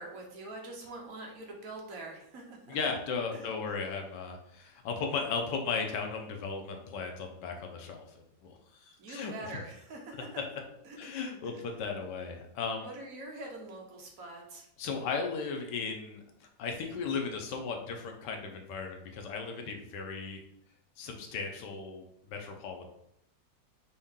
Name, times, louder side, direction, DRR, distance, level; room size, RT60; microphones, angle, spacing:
voice 1, 0.0-2.8 3.3-3.4 9.0-10.3 10.8-11.0 12.8-14.7, right 2 dB, 55° right, 0 dB, 1.2 m, -44 dB
voice 2, 2.7-9.3 11.0-12.9 14.8-20.4 21.0-22.9, left 5 dB, 75° left, 3 dB, 1.2 m, -36 dB
4.5 x 2.8 x 3.6 m, 0.76 s
omnidirectional pair, 1.9 m